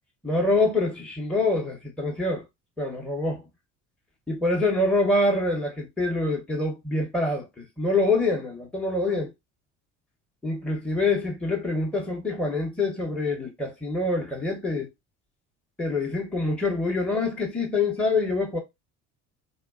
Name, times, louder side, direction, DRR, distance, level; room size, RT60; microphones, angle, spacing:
voice 1, 0.2-2.4 2.8-3.4 4.3-9.3 10.4-14.9 15.8-18.6, left 2 dB, 5° left, 0.7 m, -25 dB
2.7 x 2.1 x 2.3 m
hypercardioid pair, 70°, 35 cm